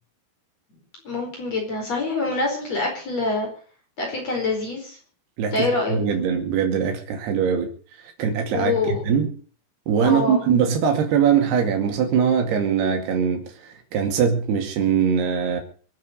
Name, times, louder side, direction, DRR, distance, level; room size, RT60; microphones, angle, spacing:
voice 1, 1.1-3.5 4.0-5.0 5.5-6.0 8.5-9.0 10.0-10.4, left 3 dB, 40° left, 5.5 m, -25 dB
voice 2, 5.4-7.7 8.2-9.3 9.9-15.6, right 7 dB, 75° right, 4.4 m, -22 dB
24.5 x 8.7 x 6.6 m
omnidirectional pair, 4.7 m